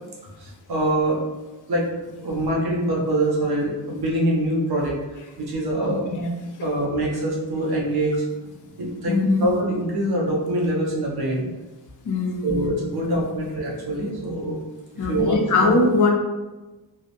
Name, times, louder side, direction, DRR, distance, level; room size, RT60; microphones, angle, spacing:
voice 1, 0.4-1.2 1.7-1.8 2.2-5.0 5.4-6.0 6.6-8.2 8.8-11.5 12.4-14.6 14.9-15.7, right 1 dB, 60° right, -2 dB, 0.7 m, -24 dB
voice 2, 9.1-9.5 12.0-12.7 13.0-13.2 15.0-16.1, left 3 dB, 45° left, 1 dB, 0.4 m, -21 dB
2.8 x 2.0 x 2.5 m, 1.1 s
wide cardioid pair, 90°, 44 cm